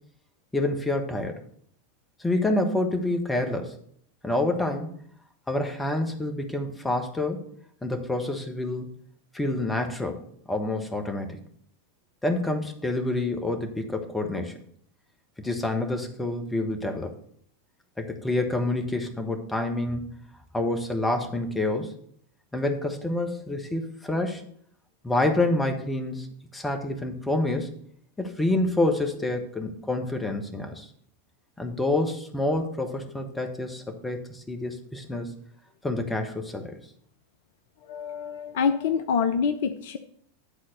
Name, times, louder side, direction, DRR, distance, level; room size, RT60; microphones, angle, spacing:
voice 1, 0.5-1.4 2.2-3.8 4.2-4.9 5.5-7.4 7.8-8.9 9.3-10.2 10.5-11.4 12.2-14.6 15.4-17.1 18.0-20.1 20.5-21.9 22.5-24.4 25.0-26.3 26.5-27.7 28.2-30.9 31.6-35.3 35.8-36.7, left 2 dB, 10° left, 4 dB, 1.3 m, -27 dB
voice 2, 37.9-40.0, left 6 dB, 55° left, 9 dB, 0.5 m, -26 dB
10.0 x 4.0 x 6.5 m, 0.64 s
figure-of-eight pair, 90°, 0 cm